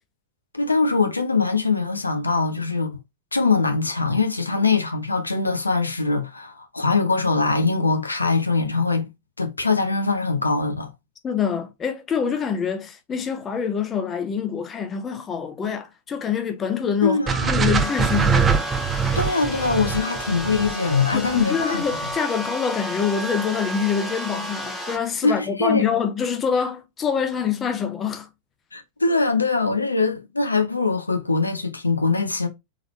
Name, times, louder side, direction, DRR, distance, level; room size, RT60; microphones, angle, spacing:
voice 1, 0.5-3.0 3.3-9.1 9.4-10.9 17.0-17.5 19.2-22.1 25.2-25.9 28.7-32.5, left 4 dB, 80° left, 0.7 m, -22 dB
voice 2, 11.2-17.2 17.5-18.7 21.1-28.3, left 7 dB, 25° left, 0.6 m, -25 dB
sound 1, 17.3-21.4, right 6 dB, 20° right, 0.5 m, -23 dB
sound 2, 17.7-25.0, equal, 5° left, 1.1 m, -31 dB
3.7 x 3.2 x 3.1 m
figure-of-eight pair, 90°, 0 cm